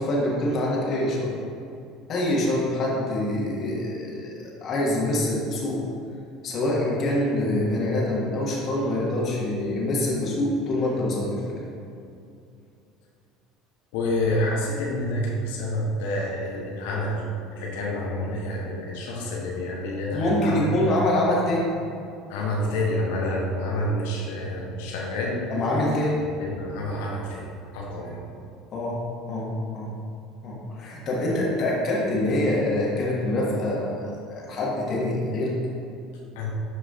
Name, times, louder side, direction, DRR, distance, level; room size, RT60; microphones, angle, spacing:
voice 1, 0.0-1.3 2.1-4.3 4.6-5.8 6.4-11.6 20.1-21.7 25.5-26.2 28.7-29.0 29.3-29.9 30.4-35.5, left 1 dB, 40° left, -4 dB, 1.4 m, -25 dB
voice 2, 13.9-17.2 17.5-20.9 22.3-25.5 26.1-27.5 27.7-28.2 36.3-36.5, left 1 dB, 60° left, -2 dB, 1.2 m, -28 dB
11.0 x 4.8 x 2.4 m, 2.5 s
figure-of-eight pair, 65°, 0 cm